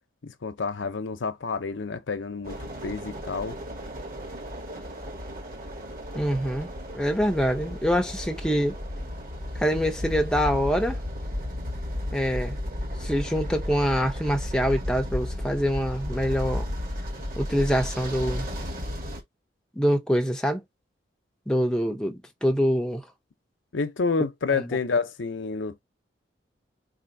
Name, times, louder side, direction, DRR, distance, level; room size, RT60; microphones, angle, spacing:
voice 1, 0.2-3.6 23.7-25.8, left 4 dB, 90° left, 0.7 m, -29 dB
sound 1, 2.4-19.2, left 1 dB, 50° right, 1.4 m, -34 dB
voice 2, 6.1-8.8 9.6-11.0 12.1-12.6 13.0-16.7 17.4-18.4 19.8-20.6 21.5-23.0 24.6-24.7, equal, 5° left, 0.6 m, -25 dB
4.3 x 2.6 x 2.7 m
head